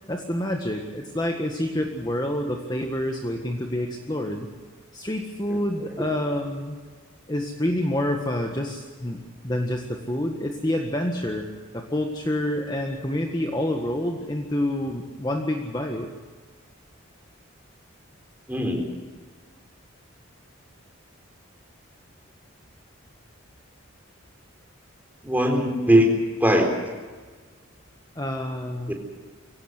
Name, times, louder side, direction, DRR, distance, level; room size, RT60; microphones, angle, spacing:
voice 1, 0.1-4.5 4.9-6.8 7.3-11.5 11.7-16.1 28.1-28.9, left 1 dB, 20° left, 3 dB, 1.7 m, -28 dB
voice 2, 18.5-18.8 25.2-26.1 26.4-26.7 28.9-29.0, equal, 10° right, 2 dB, 4.1 m, -20 dB
23.5 x 17.5 x 7.9 m, 1.4 s
head